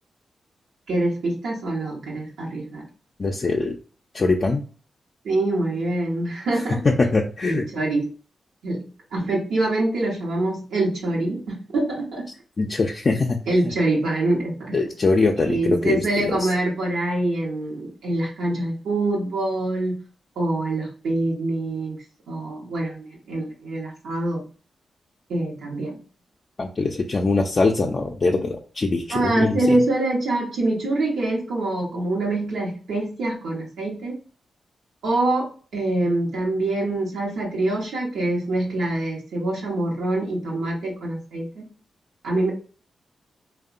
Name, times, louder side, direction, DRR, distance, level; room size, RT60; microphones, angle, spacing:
voice 1, 0.9-2.9 5.2-6.8 7.4-8.1 8.6-12.3 13.5-14.8 15.4-19.9 20.4-22.0 22.3-24.4 25.3-25.9 29.1-34.2 35.0-41.7 42.2-42.5, right 2 dB, 90° right, -4 dB, 0.7 m, -25 dB
voice 2, 3.2-3.8 4.1-4.6 6.8-7.6 12.6-13.4 13.6-13.7 14.7-16.5 26.6-29.8, left 3 dB, 50° left, 0 dB, 0.3 m, -22 dB
2.8 x 2.1 x 2.4 m, 0.40 s
cardioid pair, 50°, 0 cm